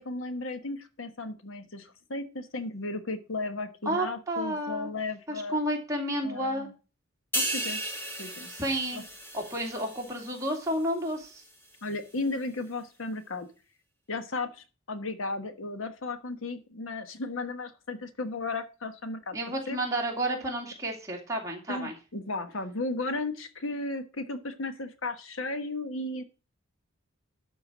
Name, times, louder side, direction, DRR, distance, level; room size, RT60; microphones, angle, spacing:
voice 1, 0.0-5.6 6.2-6.7 7.3-7.8 8.2-8.5 8.9-9.0 11.8-13.5 14.1-19.4 19.7-19.8 21.7-26.2, left 2 dB, 80° left, 9 dB, 1.2 m, -35 dB
voice 2, 3.9-4.9 5.3-6.7 8.5-9.0 9.3-11.4 19.3-21.9, right 1 dB, 15° right, -1 dB, 2.5 m, -31 dB
sound 1, 7.3-10.9 11.2-11.5, right 1 dB, 10° left, 1.7 m, -35 dB
12.0 x 4.5 x 6.2 m, 0.33 s
head